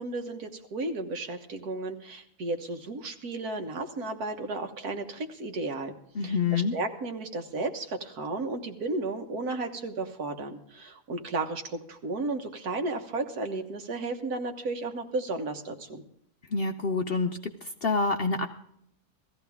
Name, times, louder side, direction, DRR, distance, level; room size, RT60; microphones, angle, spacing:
voice 1, 0.0-5.9 6.2-16.0, right 2 dB, 80° right, 6 dB, 1.8 m, -33 dB
voice 2, 6.2-6.8 16.5-17.3 17.6-18.5, left 4 dB, 55° left, 7 dB, 0.7 m, -27 dB
17.5 x 14.0 x 3.6 m, 0.72 s
omnidirectional pair, 1.6 m